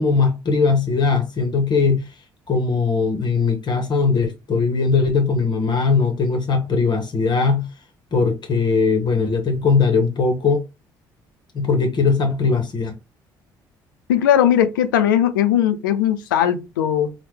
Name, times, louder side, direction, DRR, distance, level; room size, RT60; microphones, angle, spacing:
voice 1, 0.0-2.1 2.5-7.7 8.1-10.6 11.5-12.9, left 4 dB, 45° left, 0.8 m, -19 dB
voice 2, 14.1-17.1, left 10 dB, 90° left, 0.4 m, -18 dB
2.9 x 2.1 x 3.4 m
hypercardioid pair, 55°, 11 cm